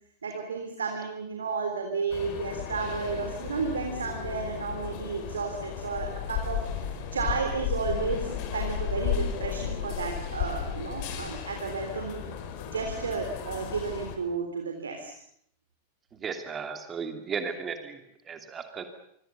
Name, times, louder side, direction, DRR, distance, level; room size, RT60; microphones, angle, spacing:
voice 1, 0.2-6.6 7.1-12.2 12.7-15.1, right 4 dB, 70° right, 3 dB, 3.7 m, -32 dB
sound 1, 2.1-14.2, left 8 dB, 45° left, 4.2 m, -34 dB
voice 2, 16.2-18.0 18.2-18.8, right 6 dB, 25° right, 6 dB, 2.8 m, -35 dB
27.0 x 24.0 x 7.0 m, 0.69 s
figure-of-eight pair, 90°, 0 cm